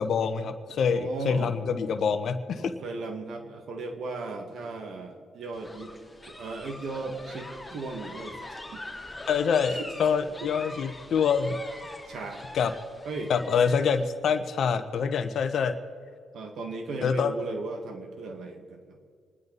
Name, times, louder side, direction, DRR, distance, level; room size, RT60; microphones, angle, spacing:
voice 1, 0.0-2.7 9.3-11.6 12.5-12.7 13.3-15.8 17.0-17.3, left 6 dB, 60° left, 9 dB, 1.0 m, -26 dB
voice 2, 0.9-1.6 2.6-5.9 6.2-8.4 8.7-8.8 9.7-9.9 10.4-10.5 11.9-12.6 13.1-13.3 16.3-18.8, right 3 dB, 65° right, 4 dB, 1.9 m, -36 dB
sound 1, 5.5-14.1, left 2 dB, 10° left, 3.2 m, -43 dB
26.0 x 11.0 x 4.1 m, 2.1 s
cardioid pair, 90°, 0 cm